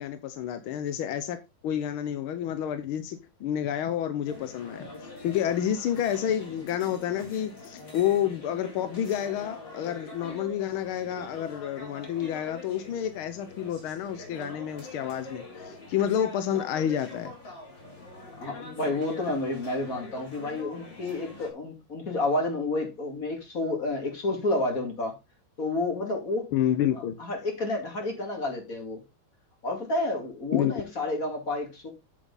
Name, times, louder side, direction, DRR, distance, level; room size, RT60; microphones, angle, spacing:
voice 1, 0.0-17.3 26.5-27.2 30.5-30.7, left 10 dB, 85° left, 1.7 m, -29 dB
sound 1, 4.3-21.5, left 2 dB, 60° left, 4.3 m, -44 dB
voice 2, 18.3-25.2 25.6-26.5 26.9-29.0 29.6-31.9, left 2 dB, 40° left, 3.0 m, -30 dB
8.5 x 7.3 x 4.0 m
omnidirectional pair, 2.3 m